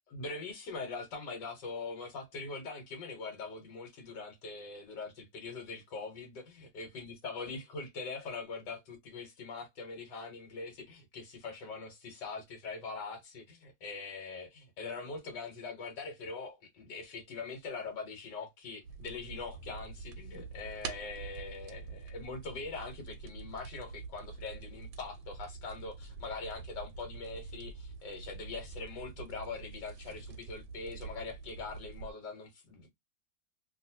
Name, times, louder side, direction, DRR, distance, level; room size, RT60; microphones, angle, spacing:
voice 1, 0.1-32.9, left 4 dB, 75° left, 1.6 m, -42 dB
sound 1, 18.8-32.1, right 5 dB, 75° right, 1.2 m, -46 dB
2.9 x 2.7 x 2.7 m
omnidirectional pair, 2.0 m